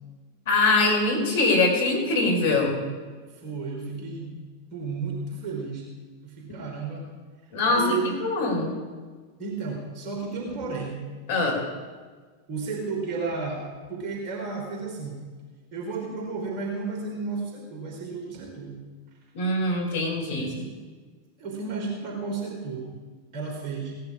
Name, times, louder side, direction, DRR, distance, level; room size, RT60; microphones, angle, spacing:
voice 1, 0.5-2.8 6.5-6.6 7.5-8.7 11.3-11.6 19.3-20.5, left 2 dB, 55° left, 0 dB, 4.4 m, -23 dB
voice 2, 3.3-4.3 4.7-5.9 6.2-7.1 7.6-8.2 9.4-11.0 12.5-13.6 13.9-15.2 15.7-18.7 20.3-20.7 21.4-22.9 23.3-24.0, right 4 dB, 35° right, -1 dB, 3.5 m, -32 dB
17.0 x 10.5 x 4.9 m, 1.4 s
figure-of-eight pair, 90°, 0 cm